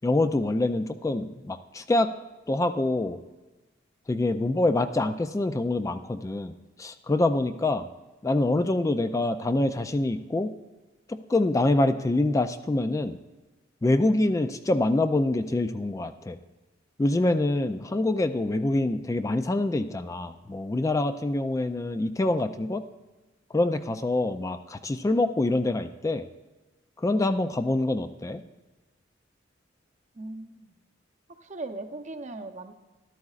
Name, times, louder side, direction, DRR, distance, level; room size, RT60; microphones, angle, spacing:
voice 1, 0.0-2.1 2.5-3.2 4.1-7.9 8.2-10.5 11.1-13.2 13.8-16.4 17.0-22.8 23.5-26.2 27.0-28.4, left 2 dB, 15° left, 10 dB, 0.3 m, -25 dB
voice 2, 30.1-30.8 31.4-32.7, right 2 dB, 40° right, 5 dB, 0.7 m, -38 dB
13.5 x 12.0 x 2.4 m, 1.2 s
head